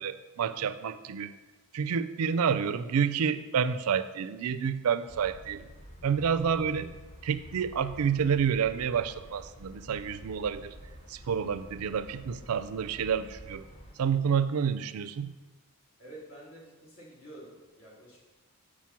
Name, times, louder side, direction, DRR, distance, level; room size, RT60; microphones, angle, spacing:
voice 1, 0.0-1.3 1.7-5.7 6.0-6.9 7.2-10.7 11.1-13.6 14.0-15.3, right 7 dB, 80° right, 13 dB, 0.4 m, -29 dB
sound 1, 5.1-13.9, equal, 30° left, 1.0 m, -49 dB
voice 2, 16.0-18.2, right 1 dB, 70° left, -6 dB, 2.9 m, -49 dB
7.4 x 4.9 x 5.8 m, 1.2 s
head